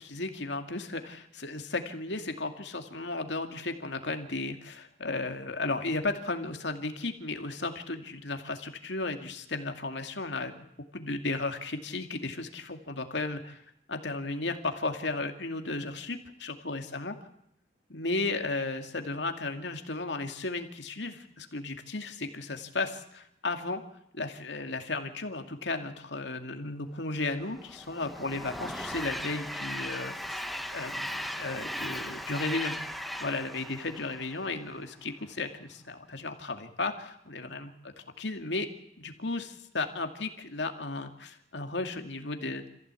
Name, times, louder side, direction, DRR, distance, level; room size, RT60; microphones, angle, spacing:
voice 1, 0.0-10.7 10.9-13.6 13.9-17.1 17.9-23.8 24.1-30.4 30.7-32.7 33.2-38.7 39.0-42.7, left 3 dB, 80° left, 5 dB, 2.3 m, -34 dB
Train, 27.3-34.8, equal, ahead, 1.0 m, -38 dB
26.5 x 15.5 x 8.3 m, 0.78 s
head